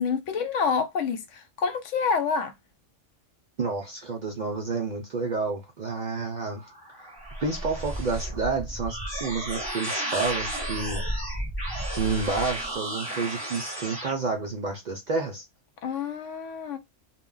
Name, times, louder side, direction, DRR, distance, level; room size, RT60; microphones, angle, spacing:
voice 1, 0.0-2.5 15.8-16.8, left 5 dB, 80° left, 1.0 m, -27 dB
voice 2, 3.6-6.7 6.9-7.1 7.4-11.0 11.9-15.4, right 4 dB, 60° right, 0.5 m, -30 dB
sound 1, 6.5-14.1, right 1 dB, 20° left, 1.0 m, -33 dB
2.2 x 2.1 x 3.7 m
omnidirectional pair, 1.3 m